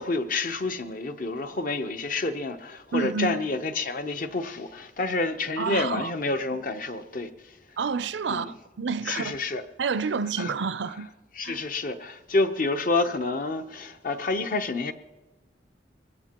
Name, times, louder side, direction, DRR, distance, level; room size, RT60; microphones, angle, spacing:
voice 1, 0.0-7.6 8.3-8.5 9.1-9.6 10.4-10.5 11.3-14.9, left 3 dB, 50° left, 0.8 m, -29 dB
voice 2, 2.9-3.4 5.6-6.1 7.8-9.3 9.8-11.1 11.4-11.6, right 5 dB, 80° right, 0.5 m, -29 dB
22.5 x 17.5 x 3.0 m
head